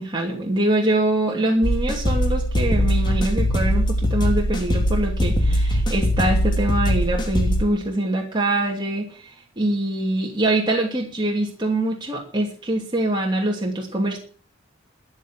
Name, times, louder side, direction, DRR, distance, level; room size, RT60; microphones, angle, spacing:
voice 1, 0.0-14.2, right 1 dB, 25° right, -1 dB, 2.9 m, -24 dB
sound 1, 1.6-7.6, equal, 20° left, 2.8 m, -21 dB
13.5 x 10.5 x 7.4 m, 0.42 s
head